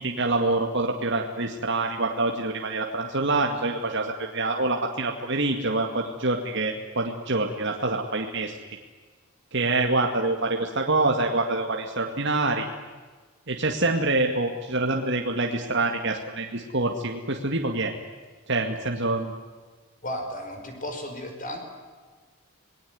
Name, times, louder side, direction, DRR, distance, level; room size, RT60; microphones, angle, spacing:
voice 1, 0.0-8.6 9.5-12.7 13.5-17.9 18.5-19.3, right 2 dB, 55° right, 2 dB, 2.2 m, -26 dB
voice 2, 20.0-21.6, equal, 35° left, 4 dB, 5.4 m, -34 dB
26.5 x 20.5 x 9.5 m, 1.4 s
head